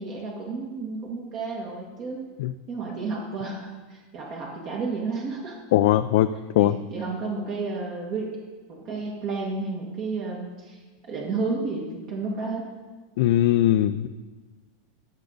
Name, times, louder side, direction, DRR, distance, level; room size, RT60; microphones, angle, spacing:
voice 1, 0.0-2.2 2.7-5.6 6.6-8.3 8.7-12.7, right 3 dB, 50° right, -2 dB, 1.9 m, -32 dB
voice 2, 5.7-6.3 6.6-6.8 13.2-14.1, left 13 dB, 70° left, 9 dB, 0.4 m, -20 dB
15.0 x 6.6 x 4.0 m, 1.3 s
supercardioid pair, 120°, 0 cm